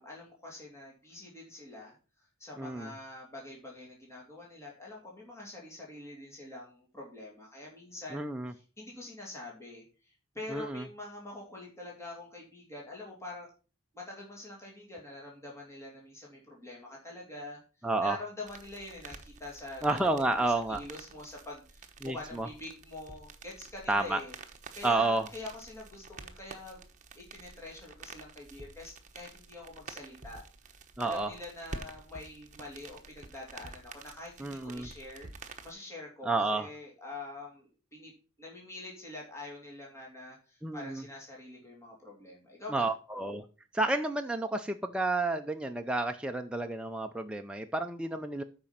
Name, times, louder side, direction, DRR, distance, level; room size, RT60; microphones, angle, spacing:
voice 1, 0.0-2.0 2.4-8.2 8.5-13.5 13.9-17.6 18.0-24.3 24.7-26.8 27.1-30.4 31.0-35.3 35.6-38.1 38.4-42.9, left 2 dB, 15° left, -3 dB, 2.6 m, -45 dB
voice 2, 2.6-2.9 8.1-8.5 10.5-10.9 17.8-18.2 19.8-20.8 22.0-22.5 23.9-24.2 24.8-25.3 31.0-31.3 34.4-34.9 36.2-36.7 40.6-41.0 42.7-43.4 43.7-48.4, right 2 dB, 5° right, 4 dB, 0.5 m, -30 dB
sound 1, 18.5-35.7, right 4 dB, 35° right, 1.0 m, -49 dB
8.8 x 5.3 x 5.8 m, 0.36 s
head